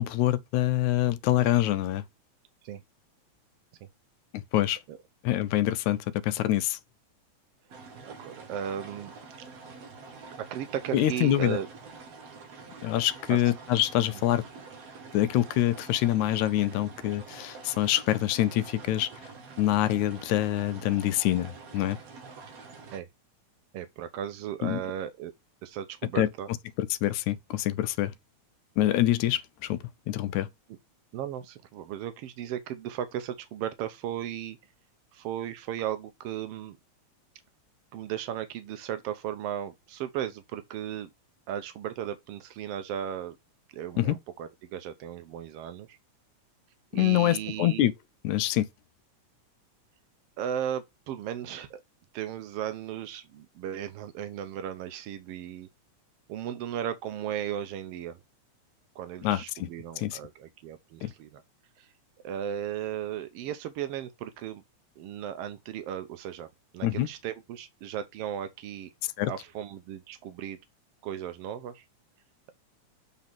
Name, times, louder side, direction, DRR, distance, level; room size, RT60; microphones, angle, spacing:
voice 1, 0.0-2.0 4.3-4.8 5.2-6.8 10.9-11.6 12.8-14.4 15.1-19.1 19.6-22.0 24.6-24.8 26.2-26.3 26.8-28.1 28.8-30.5 44.0-44.2 46.9-47.9 48.2-48.7 59.2-59.7 60.0-60.2 61.0-61.1 66.8-67.1 69.2-69.3, left 13 dB, 80° left, 1.9 m, -25 dB
sound 1, 7.7-23.0, right 4 dB, 60° right, 2.2 m, -47 dB
voice 2, 8.0-9.1 10.4-11.7 13.3-13.4 22.9-23.1 23.7-25.3 25.6-26.5 31.1-34.6 35.1-36.8 37.9-41.1 41.5-43.4 43.7-46.0 46.9-47.8 50.4-51.8 52.1-55.7 56.3-58.2 58.9-61.4 61.8-61.9 62.2-64.6 65.0-66.5 66.7-68.9 69.3-70.6 71.0-71.8, right 10 dB, 80° right, 1.3 m, -36 dB
7.4 x 4.1 x 5.9 m
omnidirectional pair, 3.4 m